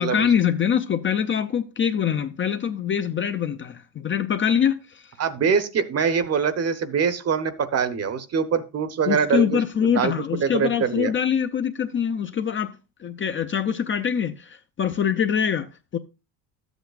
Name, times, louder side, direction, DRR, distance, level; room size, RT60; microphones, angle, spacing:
voice 1, 0.0-5.1 9.1-12.7 13.0-16.0, left 8 dB, 30° left, 0.6 m, -24 dB
voice 2, 5.2-11.1, right 6 dB, 35° right, 0.9 m, -24 dB
12.5 x 8.1 x 2.4 m
cardioid pair, 115°, 43 cm